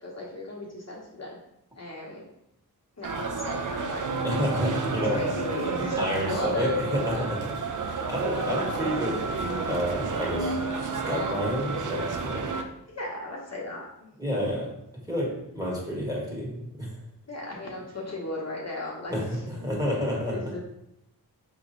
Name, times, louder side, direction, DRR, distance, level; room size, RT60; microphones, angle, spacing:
voice 1, 0.0-1.4 1.8-2.2 3.0-4.1 5.1-7.3 8.3-8.8 12.9-14.1 17.3-19.4 20.3-20.6, left 2 dB, 40° left, -4 dB, 1.2 m, -35 dB
sound 1, 3.0-12.6, right 4 dB, 50° right, 0.6 m, -30 dB
voice 2, 4.2-5.2 6.0-7.4 7.8-10.6 11.1-12.4 14.2-14.7 15.1-16.9 19.1-20.4, equal, 10° right, -4 dB, 1.8 m, -30 dB
4.3 x 3.1 x 3.7 m, 0.81 s
cardioid pair, 60°, 39 cm